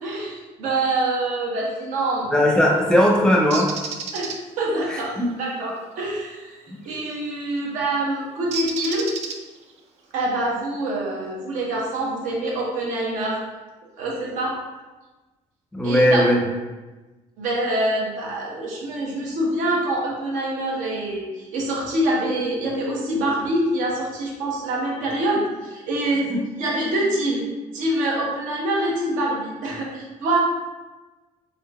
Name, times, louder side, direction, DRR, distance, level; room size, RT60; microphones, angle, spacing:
voice 1, 0.0-2.3 2.7-2.8 4.1-5.1 5.4-6.6 6.8-9.1 10.1-13.4 14.0-14.5 15.8-16.2 17.4-26.3 26.6-27.4 27.7-30.4, right 1 dB, 75° right, -3 dB, 1.0 m, -25 dB
voice 2, 2.3-3.7 4.9-5.3 6.7-6.8 15.7-16.4 26.3-26.4, equal, 5° left, -1 dB, 0.6 m, -18 dB
Bird, 3.5-4.4 7.0-7.2 8.5-9.7, right 5 dB, 55° right, 0.4 m, -31 dB
3.7 x 3.7 x 2.3 m, 1.2 s
cardioid pair, 155°, 13 cm